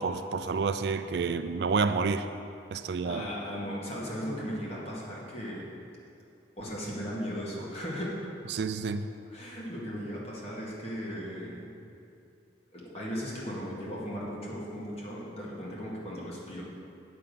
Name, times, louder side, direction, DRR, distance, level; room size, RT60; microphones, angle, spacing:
voice 1, 0.0-2.3 2.7-3.3 8.5-9.0, right 4 dB, 65° right, 10 dB, 0.4 m, -29 dB
voice 2, 2.8-5.7 6.6-8.2 9.3-11.7 12.7-16.6, equal, 35° left, -5 dB, 1.9 m, -37 dB
8.6 x 5.8 x 6.9 m, 2.6 s
head